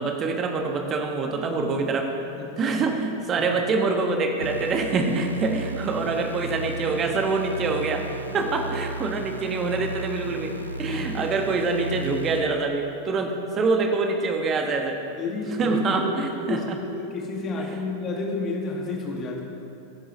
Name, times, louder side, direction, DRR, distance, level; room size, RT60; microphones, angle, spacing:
voice 1, 0.0-2.1 2.6-8.1 8.3-10.5 10.8-15.0 15.6-16.8, right 3 dB, 25° right, 4 dB, 1.5 m, -25 dB
voice 2, 2.4-2.8 3.4-3.5 8.3-8.5 10.8-11.3 15.2-16.0 16.3-16.7 16.9-19.4, left 3 dB, 30° left, 0 dB, 2.2 m, -31 dB
sound 1, 4.4-12.4, right 3 dB, 80° right, 0.8 m, -35 dB
23.0 x 11.0 x 3.2 m, 2.7 s
figure-of-eight pair, 90°, 0 cm